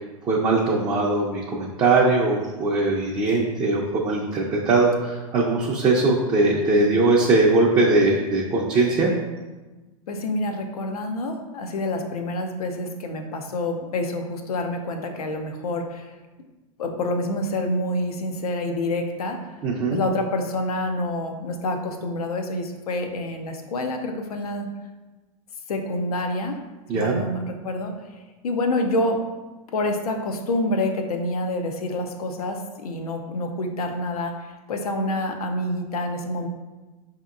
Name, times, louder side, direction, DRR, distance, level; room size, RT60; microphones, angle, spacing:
voice 1, 0.2-9.1 19.6-20.0 26.9-27.1, right 3 dB, 25° right, -4 dB, 0.5 m, -20 dB
voice 2, 10.1-16.1 16.8-19.4 19.9-24.7 25.7-26.6 26.9-27.9 28.4-29.2 29.7-34.3 34.7-36.5, left 1 dB, 85° left, 4 dB, 0.6 m, -27 dB
5.0 x 2.8 x 2.4 m, 1.2 s
hypercardioid pair, 120°, 19 cm